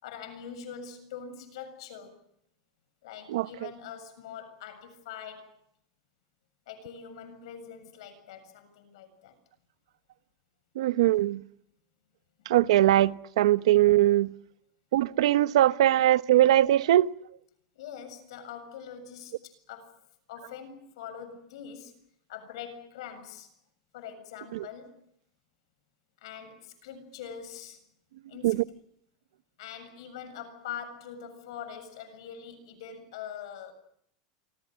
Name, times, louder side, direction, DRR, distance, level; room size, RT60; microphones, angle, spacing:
voice 1, 0.0-2.2 3.0-5.6 6.7-9.4 17.8-20.0 20.3-21.9 22.3-23.5 23.9-25.0 26.2-27.8 28.3-28.6 29.6-33.7, left 8 dB, 70° left, 7.2 m, -43 dB
voice 2, 10.8-11.4 12.5-14.3 14.9-17.1 24.5-24.7 28.4-28.6, right 13 dB, 85° right, 1.0 m, -21 dB
28.0 x 25.0 x 6.4 m
supercardioid pair, 170°, 3 cm